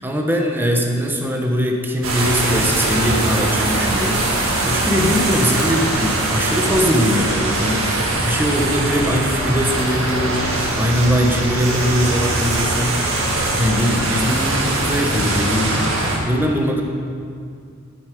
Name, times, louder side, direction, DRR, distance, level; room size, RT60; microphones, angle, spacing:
voice 1, 0.0-13.0 13.6-16.8, equal, 10° right, 1 dB, 0.9 m, -21 dB
sound 1, 2.0-16.2, right 2 dB, 70° right, 1.9 m, -21 dB
11.0 x 6.6 x 5.1 m, 2.3 s
head